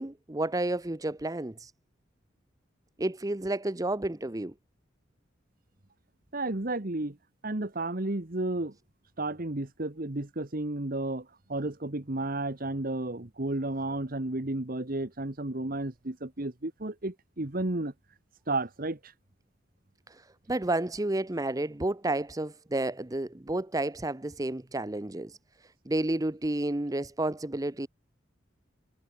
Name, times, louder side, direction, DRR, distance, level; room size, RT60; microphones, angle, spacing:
voice 1, 0.0-1.7 3.0-4.5 20.1-25.4 25.9-27.9, right 2 dB, 20° right, 0.7 m, -31 dB
voice 2, 6.3-7.2 7.4-8.7 9.2-17.9 18.5-19.1, right 2 dB, 45° right, 1.4 m, -32 dB
head